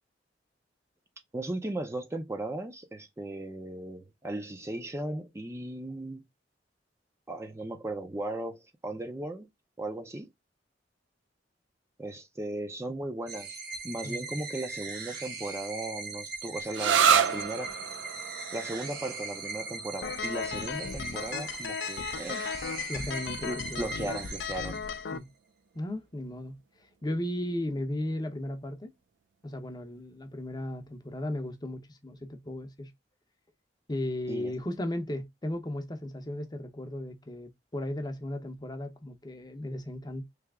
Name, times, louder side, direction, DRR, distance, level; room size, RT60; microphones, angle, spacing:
voice 1, 1.3-6.3 7.3-9.5 9.8-10.3 12.0-13.6 13.8-17.7 18.5-22.5 23.4-24.8 34.3-34.5, right 1 dB, 15° right, 0.5 m, -37 dB
sound 1, 13.3-25.2, right 4 dB, 55° right, 1.2 m, -40 dB
sound 2, 16.7-24.1, right 7 dB, 90° right, 0.4 m, -31 dB
sound 3, 20.0-25.2, left 6 dB, 75° left, 0.5 m, -36 dB
voice 2, 22.9-24.2 25.1-25.3 25.7-26.6 27.0-28.9 29.4-32.9 33.9-40.2, left 1 dB, 25° left, 0.7 m, -35 dB
3.3 x 2.8 x 3.5 m
head